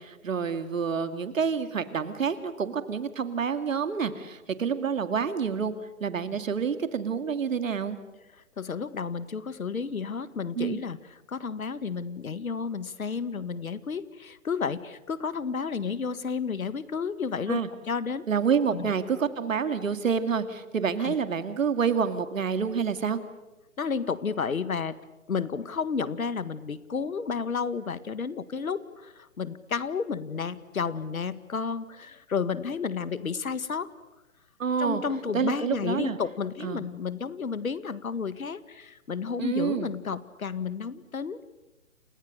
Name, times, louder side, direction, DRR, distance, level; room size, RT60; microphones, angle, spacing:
voice 1, 0.0-5.7 6.0-8.0 10.6-10.8 17.5-17.7 18.3-23.2 34.6-35.0 35.3-36.2 36.6-36.8 39.4-39.9, right 6 dB, 65° right, 10 dB, 2.3 m, -28 dB
voice 2, 8.6-11.0 11.3-17.6 17.9-18.2 18.7-18.9 21.0-21.1 23.8-25.0 25.3-33.9 34.8-41.4, left 5 dB, 80° left, 15 dB, 1.8 m, -31 dB
29.5 x 28.5 x 6.7 m, 1.1 s
hypercardioid pair, 145°, 41 cm